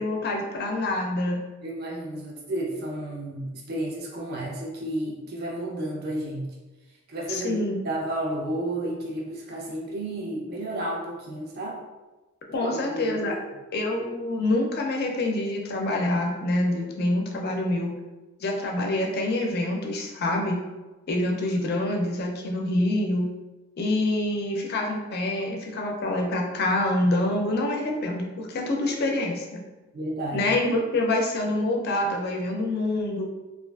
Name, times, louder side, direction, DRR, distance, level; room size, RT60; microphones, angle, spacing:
voice 1, 0.0-1.4 7.3-7.8 12.5-13.3 13.7-17.9 18.4-20.6 21.1-23.3 23.8-29.6 30.3-33.2, left 1 dB, 50° left, 0 dB, 0.4 m, -26 dB
voice 2, 1.6-6.6 7.1-11.8 12.5-13.3 29.9-30.5, right 1 dB, 50° right, -2 dB, 0.5 m, -32 dB
2.4 x 2.4 x 2.3 m, 1.2 s
head